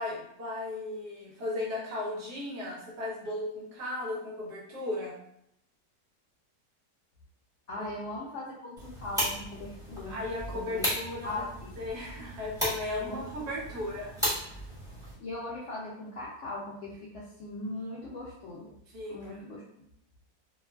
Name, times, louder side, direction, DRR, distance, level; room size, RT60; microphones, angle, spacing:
voice 1, 0.0-5.1 7.8-7.9 10.0-11.4 11.8-14.5 18.9-19.4, left 2 dB, 70° right, -4 dB, 1.3 m, -36 dB
voice 2, 7.7-10.2 10.5-10.9 11.2-11.7 13.0-13.2 15.2-18.7 19.1-19.6, left 2 dB, 75° left, -5 dB, 0.6 m, -39 dB
sound 1, 8.8-15.1, equal, ahead, 1.1 m, -36 dB
3.0 x 2.3 x 2.2 m, 0.74 s
omnidirectional pair, 1.8 m